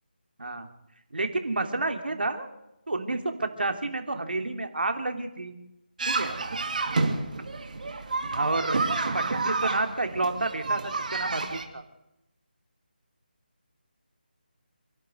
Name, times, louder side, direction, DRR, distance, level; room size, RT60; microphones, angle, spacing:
voice 1, 1.1-2.5 2.9-5.5 6.1-6.3 7.4-7.6 8.3-8.8 9.1-11.8, right 2 dB, 75° right, 5 dB, 3.4 m, -30 dB
sound 1, 6.0-11.7, right 3 dB, 55° right, 2.8 m, -29 dB
27.5 x 11.5 x 8.1 m, 0.91 s
figure-of-eight pair, 165°, 5 cm